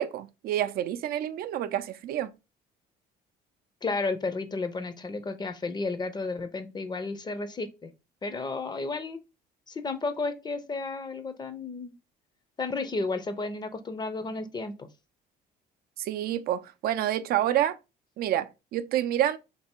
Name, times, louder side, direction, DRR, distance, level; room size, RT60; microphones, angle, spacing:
voice 1, 0.0-2.3 16.0-17.8 18.2-19.4, right 12 dB, 65° right, 0.4 m, -28 dB
voice 2, 3.8-7.9 8.2-9.2 9.7-11.9 12.6-14.9, left 3 dB, 25° left, 0.5 m, -32 dB
3.3 x 2.6 x 4.3 m
cardioid pair, 110°, 17 cm